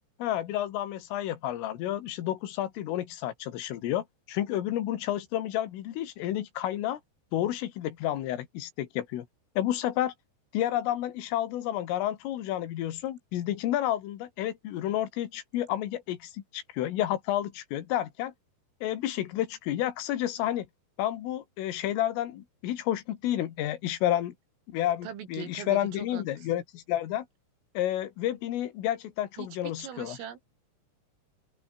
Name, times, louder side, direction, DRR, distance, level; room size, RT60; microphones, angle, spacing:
voice 1, 0.2-7.0 7.3-9.3 9.6-10.1 10.5-18.3 18.8-20.7 21.0-24.3 24.7-27.3 27.8-30.2, left 12 dB, 85° left, 4.6 m, -30 dB
voice 2, 25.0-26.5 29.4-30.4, right 9 dB, 85° right, 6.0 m, -41 dB
open air
omnidirectional pair, 5.7 m